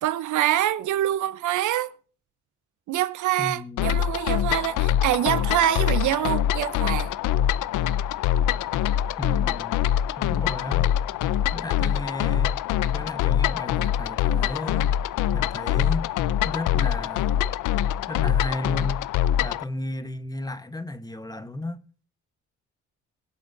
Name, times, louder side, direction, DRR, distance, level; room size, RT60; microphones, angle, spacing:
voice 1, 0.0-1.9 2.9-7.1, right 13 dB, 75° right, 0.9 m, -25 dB
voice 2, 3.4-4.1 9.2-9.8 10.2-10.9 11.5-12.6 12.9-15.0 15.3-16.1 16.4-17.5 18.1-19.1 19.4-21.8, left 1 dB, 15° left, 1.2 m, -34 dB
sound 1, 3.8-19.6, left 11 dB, 85° left, 0.6 m, -24 dB
23.0 x 8.4 x 2.7 m
cardioid pair, 90°, 30 cm